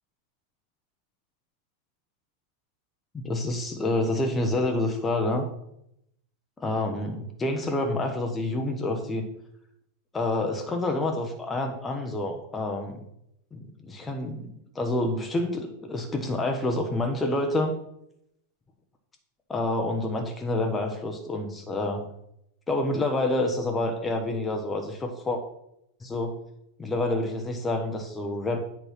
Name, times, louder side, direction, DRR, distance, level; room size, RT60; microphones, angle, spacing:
voice 1, 3.1-5.5 6.6-9.3 10.1-13.0 13.5-17.8 19.5-22.1 22.7-25.4 26.0-26.3 26.8-28.6, left 2 dB, 15° left, 3 dB, 0.9 m, -28 dB
8.1 x 4.4 x 5.6 m, 0.77 s
figure-of-eight pair, 90°, 0 cm